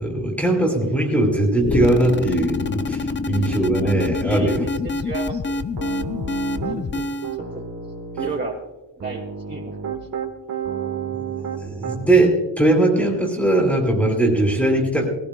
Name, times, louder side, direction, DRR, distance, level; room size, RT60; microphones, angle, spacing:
voice 1, 0.0-4.6 11.6-15.1, right 2 dB, 5° left, -1 dB, 2.5 m, -20 dB
sound 1, 1.6-7.4, left 3 dB, 25° left, 0.4 m, -26 dB
voice 2, 3.6-5.7 6.7-7.0 7.4-7.6 8.2-8.6 9.0-9.2 9.5-9.8, right 2 dB, 25° right, -2 dB, 2.3 m, -32 dB
Piano, 5.8-6.8 7.2-8.4 9.0-12.2, right 7 dB, 50° right, 1.5 m, -30 dB
21.0 x 16.5 x 2.2 m, 1.0 s
wide cardioid pair, 175°, 44 cm